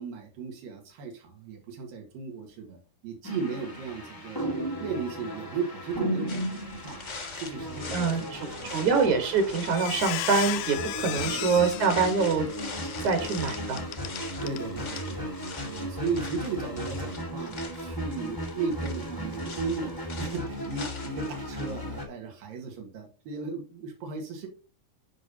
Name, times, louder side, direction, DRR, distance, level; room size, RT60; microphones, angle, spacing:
voice 1, 0.0-2.8 3.0-4.5 4.8-8.9 11.1-11.4 14.4-15.3 15.6-24.5, right 5 dB, 90° right, 1 dB, 3.4 m, -36 dB
sound 1, 3.2-22.0, equal, 25° left, 0.4 m, -36 dB
sound 2, 6.3-21.8, left 4 dB, 50° left, 0.8 m, -43 dB
voice 2, 7.9-12.5 13.0-13.8, right 5 dB, 65° right, 5 dB, 2.7 m, -25 dB
Squeak, 9.1-9.4 9.7-14.6 14.9-15.1 15.5-15.7, left 13 dB, 75° left, 2.0 m, -35 dB
10.0 x 5.3 x 2.8 m, 0.33 s
omnidirectional pair, 3.9 m